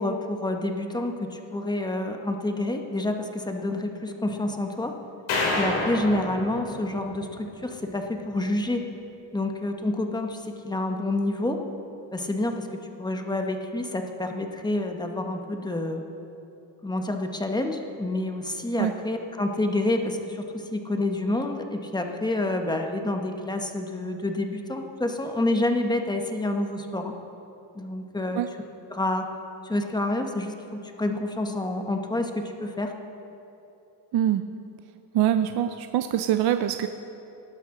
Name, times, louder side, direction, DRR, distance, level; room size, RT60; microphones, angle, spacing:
voice 1, 0.0-4.9 5.5-8.8 9.3-11.6 12.1-12.7 13.0-16.1 16.8-20.4 20.7-27.1 27.7-28.4 28.9-29.3 29.6-32.9, left 2 dB, 10° left, 4 dB, 1.0 m, -28 dB
sound 1, 5.3-7.6, left 2 dB, 80° left, 3.1 m, -29 dB
voice 2, 34.1-34.4 35.1-36.9, right 11 dB, 60° right, 9 dB, 0.6 m, -24 dB
18.5 x 12.0 x 3.8 m, 2.8 s
cardioid pair, 115°, 45 cm